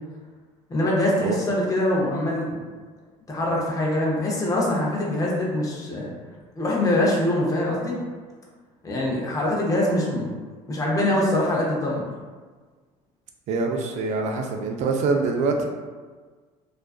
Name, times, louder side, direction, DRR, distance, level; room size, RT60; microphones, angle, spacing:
voice 1, 0.7-2.6 3.3-6.1 6.6-8.0 8.8-10.3 10.7-12.0, left 1 dB, 25° left, -3 dB, 0.7 m, -23 dB
voice 2, 13.5-15.7, right 4 dB, 55° right, 3 dB, 0.4 m, -24 dB
2.4 x 2.2 x 2.3 m, 1.4 s
supercardioid pair, 95°, 14 cm